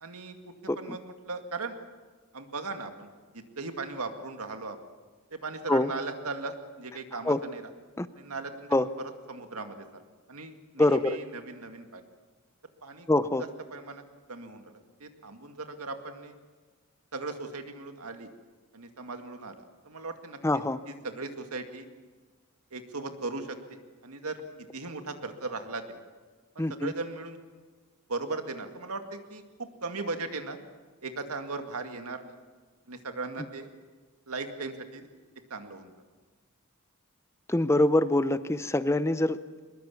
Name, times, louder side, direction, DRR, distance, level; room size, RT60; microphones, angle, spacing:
voice 1, 0.0-1.7 2.3-3.1 3.3-4.8 5.3-7.6 8.2-10.0 10.3-12.0 12.8-13.1 13.7-14.0 14.3-16.4 17.1-18.3 18.7-21.9 22.7-24.4 24.7-26.0 26.6-27.4 28.1-30.6 31.0-32.3 32.9-33.7 34.3-35.1 35.5-35.9, right 3 dB, 90° right, 6 dB, 2.2 m, -38 dB
voice 2, 10.8-11.2 13.1-13.4 20.4-20.8 26.6-26.9 37.5-39.6, left 1 dB, 10° left, 13 dB, 0.6 m, -25 dB
22.5 x 21.5 x 7.2 m, 1.4 s
head